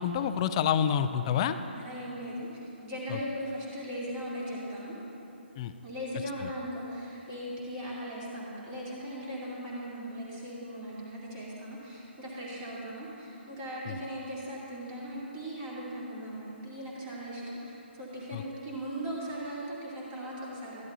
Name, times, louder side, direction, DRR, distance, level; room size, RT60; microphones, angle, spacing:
voice 1, 0.0-1.6 3.1-3.2 5.6-5.7 13.9-14.0 18.3-18.4, left 8 dB, 30° left, 10 dB, 0.3 m, -28 dB
voice 2, 1.4-2.5 2.8-4.9 5.8-20.8, equal, 25° right, -6 dB, 2.2 m, -38 dB
12.5 x 11.0 x 2.7 m, 3.0 s
figure-of-eight pair, 145°, 6 cm